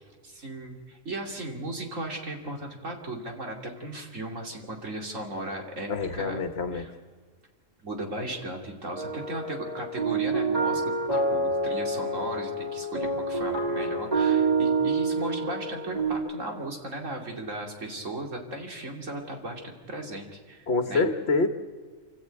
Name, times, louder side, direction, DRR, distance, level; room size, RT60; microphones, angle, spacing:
voice 1, 0.2-6.4 6.7-6.9 7.8-21.1, right 1 dB, 80° right, 1 dB, 3.3 m, -36 dB
voice 2, 5.9-6.8 20.7-21.5, left 3 dB, 55° left, 7 dB, 1.6 m, -26 dB
sound 1, 8.9-16.1, right 3 dB, 30° right, 3.5 m, -27 dB
29.5 x 13.0 x 9.1 m, 1.5 s
omnidirectional pair, 1.3 m